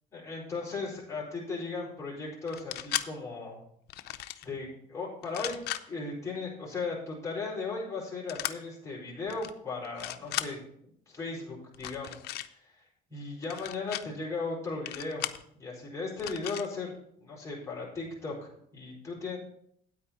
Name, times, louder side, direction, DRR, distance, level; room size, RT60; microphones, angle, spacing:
voice 1, 0.1-3.6 4.4-5.6 5.9-10.6 11.1-12.2 12.6-12.8 13.1-15.3 15.6-19.4, left 3 dB, 15° left, -6 dB, 4.6 m, -37 dB
sound 1, 2.5-3.1 3.9-4.5 5.2-5.8 8.3-8.5 9.3-9.5 9.8-10.5 11.7-12.5 13.4-14.0 14.9-15.4 16.2-16.7, left 14 dB, 75° left, 0.6 m, -36 dB
9.2 x 8.9 x 4.3 m, 0.69 s
cardioid pair, 110°, 17 cm